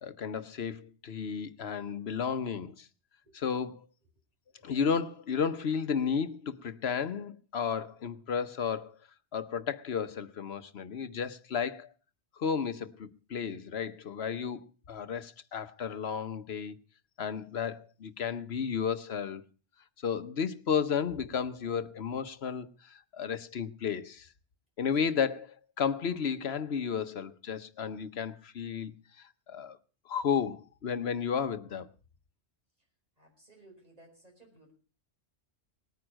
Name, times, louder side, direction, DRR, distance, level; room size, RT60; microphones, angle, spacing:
voice 1, 0.0-2.9 3.3-3.8 4.6-8.9 9.3-11.9 12.4-14.6 14.9-16.7 17.2-19.4 20.0-22.7 23.1-24.3 24.8-25.5 25.8-28.9 29.5-29.8 30.1-31.9, left 7 dB, 65° left, 1.1 m, -33 dB
voice 2, 33.2-34.7, right 2 dB, 35° right, 6.0 m, -58 dB
19.0 x 9.4 x 6.2 m
omnidirectional pair, 1.2 m